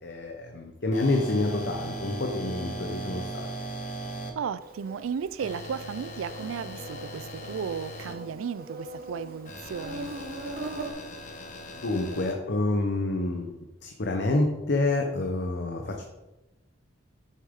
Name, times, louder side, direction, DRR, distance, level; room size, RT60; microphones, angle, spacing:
voice 1, 0.0-3.5 11.8-13.5 13.8-16.0, left 2 dB, 55° left, 0.7 m, -28 dB
sound 1, 0.9-4.3 5.4-8.1 9.5-12.3, right 1 dB, 40° left, 1.1 m, -38 dB
voice 2, 4.4-10.1, right 7 dB, 90° right, 0.4 m, -34 dB
Insect, 4.6-10.9, right 2 dB, 45° right, 1.0 m, -41 dB
7.5 x 6.5 x 3.6 m
head